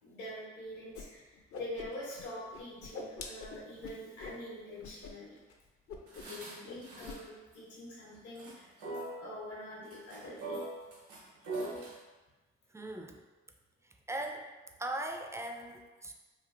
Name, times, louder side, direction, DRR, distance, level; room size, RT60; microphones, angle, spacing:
voice 1, 0.0-5.4 6.3-8.6 9.2-10.6, left 1 dB, 70° left, -6 dB, 1.1 m, -45 dB
Whoosh swoosh swish, 0.9-1.0 1.3-2.2 2.5-4.4 4.8-5.1 5.4-5.5 5.9-6.4 6.6-7.2, left 4 dB, 45° left, 0.5 m, -45 dB
sound 1, 6.1-7.2 7.5-7.6 8.1-8.5 8.8-9.2 9.9-12.0, right 2 dB, 80° right, 1.0 m, -41 dB
voice 2, 12.7-13.2 14.1-14.5 14.8-16.1, right 1 dB, 10° right, 3 dB, 0.3 m, -39 dB
3.0 x 2.6 x 2.5 m, 1.2 s
hypercardioid pair, 45°, 31 cm